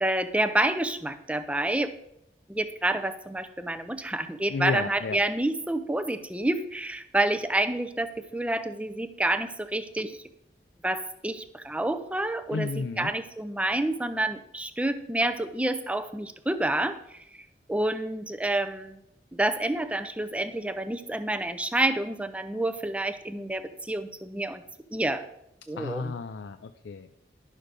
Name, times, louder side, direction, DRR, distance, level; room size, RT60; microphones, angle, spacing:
voice 1, 0.0-1.9 2.5-10.2 10.8-19.0 19.3-24.6 24.9-25.2 25.7-26.1, right 1 dB, 5° right, 10 dB, 0.5 m, -28 dB
voice 2, 4.5-5.2 12.5-13.1 25.8-27.1, left 4 dB, 85° left, 9 dB, 0.5 m, -32 dB
11.0 x 6.4 x 5.2 m, 0.81 s
head